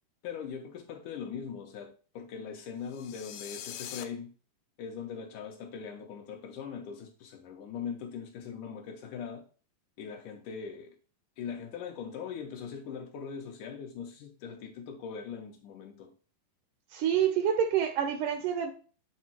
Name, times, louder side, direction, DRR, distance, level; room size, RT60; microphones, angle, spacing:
voice 1, 0.2-4.3 4.8-9.5 10.0-11.0 11.4-16.1, left 6 dB, 70° left, 2.1 m, -41 dB
sound 1, 2.9-4.0, left 11 dB, 90° left, 2.5 m, -42 dB
voice 2, 16.9-18.7, right 9 dB, 80° right, 2.0 m, -27 dB
8.3 x 3.6 x 4.4 m
omnidirectional pair, 4.1 m